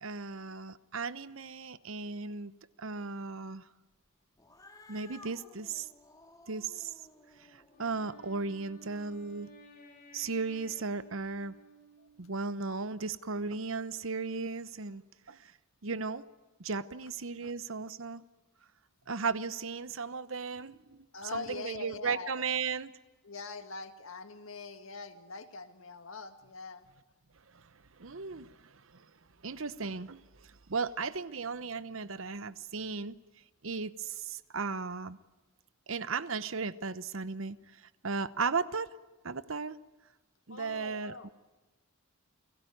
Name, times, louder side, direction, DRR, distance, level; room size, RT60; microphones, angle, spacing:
voice 1, 0.0-2.5 2.8-3.6 4.9-5.9 6.5-6.9 7.5-9.5 10.1-11.5 12.2-15.0 15.3-15.5 15.8-16.2 16.6-18.2 19.1-21.0 21.3-22.9 27.5-27.6 28.0-29.1 29.4-33.2 33.6-35.2 35.9-38.9 39.2-39.8 40.5-41.3, right 4 dB, 65° right, 15 dB, 0.9 m, -36 dB
Cat, 4.4-9.0, left 2 dB, 15° left, 3.8 m, -57 dB
Wind instrument woodwind instrument, 7.7-12.4, right 1 dB, 40° left, 7.7 m, -55 dB
voice 2, 21.1-22.5 23.2-26.9 40.5-41.3, left 4 dB, 65° left, 8 dB, 1.9 m, -43 dB
29.5 x 18.0 x 9.3 m, 1.2 s
head